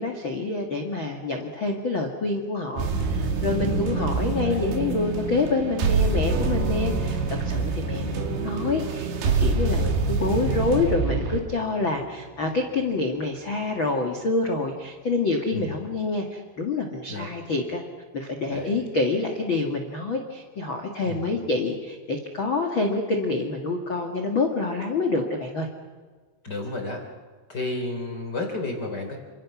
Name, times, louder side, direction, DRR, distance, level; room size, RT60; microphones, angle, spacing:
voice 1, 0.0-17.8 18.1-25.7, left 3 dB, 80° left, 4 dB, 1.1 m, -27 dB
sound 1, 2.8-11.4, right 4 dB, 60° right, 4.1 m, -26 dB
voice 2, 3.6-4.6 6.8-7.0 15.5-15.7 17.1-17.3 18.5-18.8 21.0-21.3 26.4-27.0 27.5-29.2, left 2 dB, 25° left, 3 dB, 3.2 m, -32 dB
sound 2, 6.3-15.1, right 8 dB, 80° right, 5.2 m, -39 dB
29.5 x 26.5 x 6.2 m, 1.5 s
omnidirectional pair, 5.9 m